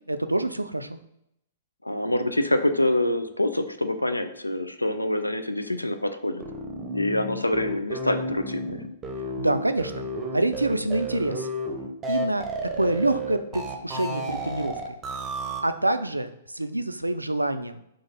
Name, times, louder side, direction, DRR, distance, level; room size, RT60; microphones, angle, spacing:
voice 1, 0.1-1.0 9.4-10.1 10.3-11.5 12.1-12.4 12.7-14.9 15.6-17.8, right 2 dB, 90° right, 10 dB, 0.3 m, -26 dB
voice 2, 1.8-6.5 6.9-8.8, left 1 dB, 90° left, 9 dB, 0.4 m, -26 dB
sound 1, 6.4-15.6, right 1 dB, 20° right, 0.7 m, -32 dB
3.8 x 2.5 x 4.1 m, 0.79 s
figure-of-eight pair, 110°, 0 cm